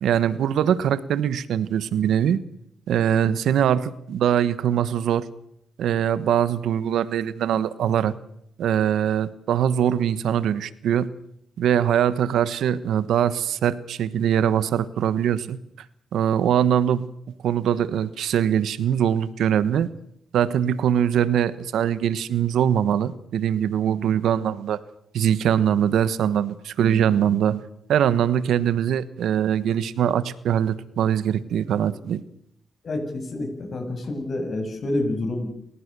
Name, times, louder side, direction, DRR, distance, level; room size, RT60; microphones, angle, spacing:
voice 1, 0.0-2.4 2.9-5.2 5.8-8.1 8.6-11.1 11.6-15.6 16.1-17.1 17.4-19.9 20.3-24.8 25.1-27.6 27.9-32.2, right 9 dB, 80° right, 16 dB, 1.2 m, -22 dB
voice 2, 32.8-35.5, left 2 dB, 50° left, 6 dB, 7.4 m, -28 dB
29.0 x 16.0 x 6.9 m, 0.74 s
cardioid pair, 100°, 0 cm